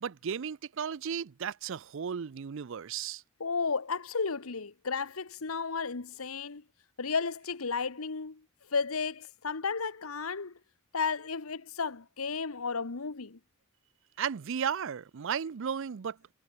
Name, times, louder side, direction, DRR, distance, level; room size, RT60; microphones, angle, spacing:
voice 1, 0.0-3.2 14.2-16.3, right 7 dB, 65° right, 0.5 m, -35 dB
voice 2, 3.4-6.6 7.0-10.6 10.9-13.4, left 5 dB, 85° left, 1.2 m, -33 dB
head